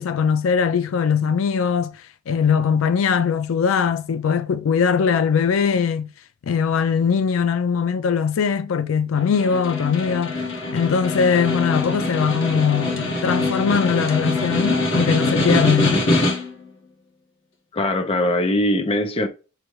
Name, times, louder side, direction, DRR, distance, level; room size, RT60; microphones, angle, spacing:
voice 1, 0.0-2.0 2.3-6.1 6.4-10.3 10.7-16.1, left 6 dB, 90° left, 0.4 m, -21 dB
Snare drum, 9.2-16.7, left 2 dB, 65° left, 1.4 m, -23 dB
voice 2, 17.7-19.3, left 1 dB, 30° left, 0.5 m, -21 dB
6.4 x 2.3 x 3.0 m
head